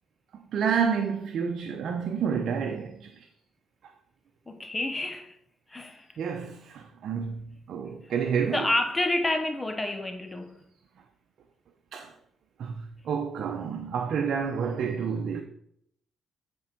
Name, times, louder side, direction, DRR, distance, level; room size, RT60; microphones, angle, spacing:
voice 1, 0.5-3.3 6.2-8.7 11.9-12.1 12.6-15.4, right 6 dB, 65° right, 0.8 m, -29 dB
voice 2, 4.5-5.4 5.7-6.1 8.0-8.1 8.5-10.6, left 1 dB, 15° left, 0.7 m, -29 dB
10.0 x 4.6 x 4.5 m
cardioid pair, 90°, 0 cm